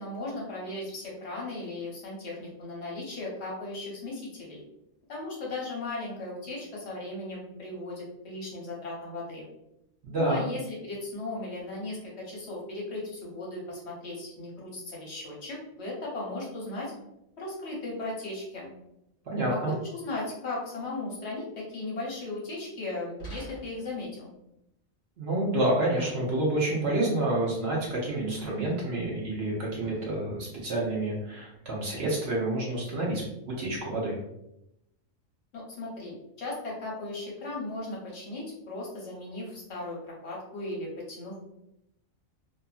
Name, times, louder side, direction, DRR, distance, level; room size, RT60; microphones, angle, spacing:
voice 1, 0.0-4.6 5.1-9.4 10.1-16.9 17.4-18.7 19.5-24.3 35.5-41.4, left 2 dB, 60° left, -4 dB, 1.0 m, -37 dB
voice 2, 10.0-10.4 19.3-19.7 25.2-34.2, right 1 dB, 55° right, -4 dB, 0.9 m, -28 dB
sound 1, 23.2-24.0 26.0-26.7 28.4-29.0 29.8-30.2, right 3 dB, 30° left, 1.1 m, -44 dB
2.7 x 2.5 x 2.3 m, 0.83 s
omnidirectional pair, 1.4 m